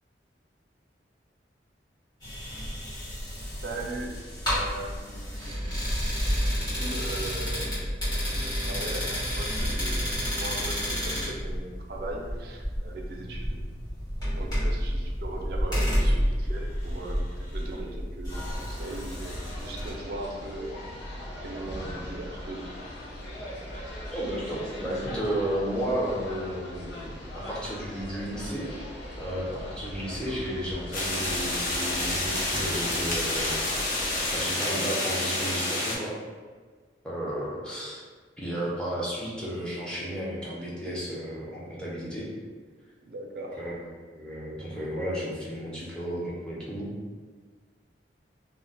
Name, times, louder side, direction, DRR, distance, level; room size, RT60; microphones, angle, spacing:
sound 1, 2.2-19.9, equal, 20° left, 1.1 m, -30 dB
voice 1, 3.6-4.2 4.5-5.8 6.3-7.8 8.2-13.6 14.3-20.8 21.4-22.7 43.1-43.6, right 2 dB, 60° right, 0 dB, 0.4 m, -39 dB
sound 2, 18.3-34.5, left 1 dB, 90° left, 0.6 m, -39 dB
voice 2, 24.1-28.8 29.2-33.6 34.3-36.1 37.0-38.0 38.4-42.3 43.6-46.9, equal, 5° left, -6 dB, 0.5 m, -33 dB
sound 3, 30.9-36.0, left 1 dB, 50° left, 0.6 m, -29 dB
2.2 x 2.0 x 3.8 m, 1.5 s
head